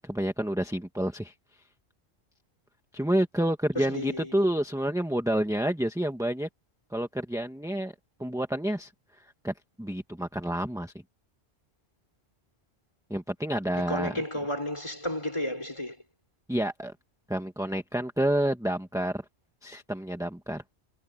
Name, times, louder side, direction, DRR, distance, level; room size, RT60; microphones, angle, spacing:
voice 1, 0.0-1.3 2.9-6.5 6.9-7.9 8.2-8.9 9.2-10.9 13.1-14.1 16.5-16.9 17.3-19.2 19.6-20.6, right 1 dB, 5° right, 1.6 m, -29 dB
voice 2, 3.7-4.4 13.7-16.0, left 1 dB, 25° left, 4.8 m, -33 dB
omnidirectional pair, 1.1 m